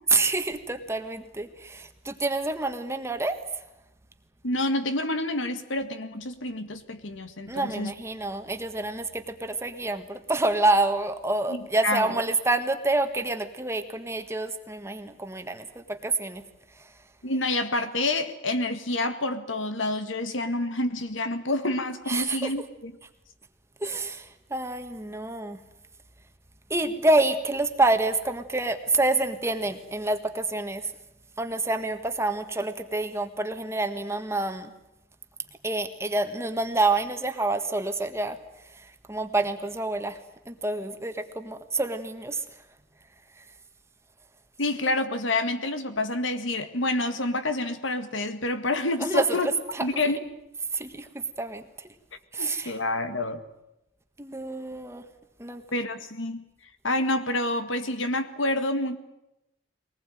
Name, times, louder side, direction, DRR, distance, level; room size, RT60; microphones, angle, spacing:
voice 1, 0.1-3.4 7.5-16.4 16.8-16.9 22.1-22.5 23.8-25.6 26.7-30.9 31.4-34.7 35.6-38.4 38.7-40.2 40.4-42.4 49.0-50.1 50.7-51.1 51.4-51.9 52.3-52.8 54.2-55.0 55.4-55.6, right 2 dB, 15° right, 7 dB, 1.5 m, -27 dB
voice 2, 4.4-7.9 11.5-12.2 17.2-22.9 44.6-49.5 49.8-50.2 52.4-53.4 55.7-56.4 56.8-59.0, left 2 dB, 75° left, 10 dB, 1.9 m, -28 dB
23.0 x 19.5 x 9.2 m, 0.88 s
head